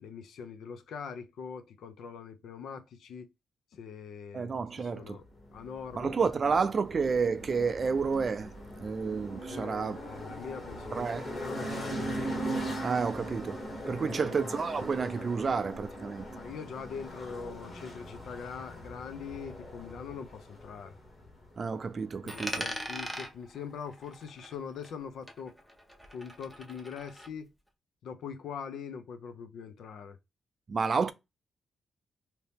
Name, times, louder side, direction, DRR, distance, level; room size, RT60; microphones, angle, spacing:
voice 1, 0.0-3.3 3.7-5.2 5.5-6.3 9.5-12.0 13.9-14.4 16.4-21.0 22.2-25.6 26.1-27.5 28.0-30.2, left 6 dB, 80° left, 0.5 m, -42 dB
voice 2, 4.3-5.2 5.9-8.5 8.8-10.0 10.9-11.3 12.8-16.3 21.6-22.7 30.7-31.1, right 5 dB, 40° right, 0.4 m, -30 dB
sound 1, 5.2-22.7, right 1 dB, 40° left, 1.2 m, -40 dB
Coin (dropping), 22.3-25.0 25.3-27.3, equal, 5° left, 0.6 m, -41 dB
2.8 x 2.7 x 3.4 m
cardioid pair, 135°, 0 cm